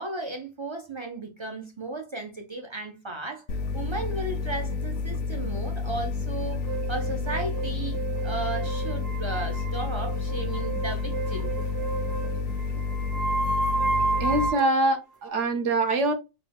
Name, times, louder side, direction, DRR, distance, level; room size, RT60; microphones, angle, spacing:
voice 1, 0.0-11.5, right 2 dB, 50° right, 0.3 m, -35 dB
sound 1, 3.5-14.5, left 4 dB, 90° left, 1.0 m, -30 dB
sound 2, 6.7-14.8, right 3 dB, 20° right, 0.7 m, -31 dB
voice 2, 14.2-16.1, right 2 dB, 65° right, 1.0 m, -24 dB
4.0 x 2.3 x 3.4 m
omnidirectional pair, 1.4 m